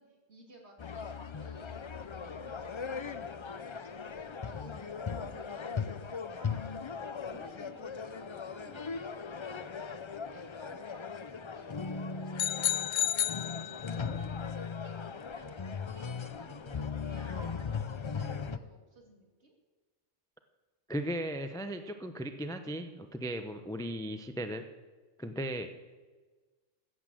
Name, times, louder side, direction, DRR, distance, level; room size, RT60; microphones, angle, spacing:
voice 1, 0.0-6.7 7.2-9.9 10.3-11.0 11.3-19.5, right 2 dB, 60° right, 0 dB, 3.0 m, -55 dB
sound 1, 0.8-18.6, left 5 dB, 50° left, 0.3 m, -38 dB
sound 2, 12.4-14.2, left 12 dB, 80° left, 1.0 m, -31 dB
voice 2, 20.9-24.6 25.2-25.7, right 1 dB, 5° left, 7 dB, 0.6 m, -36 dB
14.5 x 8.6 x 7.6 m, 1.3 s
omnidirectional pair, 1.3 m